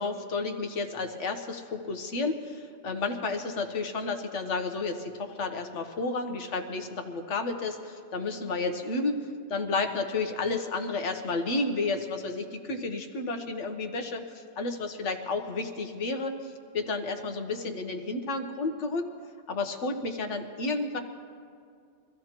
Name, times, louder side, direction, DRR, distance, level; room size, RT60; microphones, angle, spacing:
voice 1, 0.0-9.2 9.5-19.1 19.5-21.0, left 3 dB, 85° left, 6 dB, 1.3 m, -31 dB
24.0 x 14.5 x 2.9 m, 2.2 s
omnidirectional pair, 1.2 m